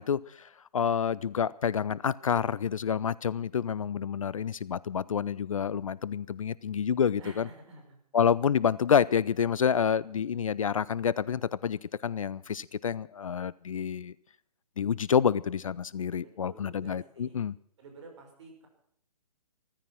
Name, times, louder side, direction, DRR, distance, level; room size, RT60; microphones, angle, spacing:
voice 1, 0.0-7.5 8.1-14.1 14.8-17.6, left 7 dB, 55° left, 21 dB, 0.5 m, -28 dB
voice 2, 7.2-8.0 16.2-17.4 17.8-18.7, right 3 dB, 45° right, 3 dB, 5.9 m, -50 dB
15.5 x 14.0 x 6.1 m, 0.67 s
figure-of-eight pair, 135°, 21 cm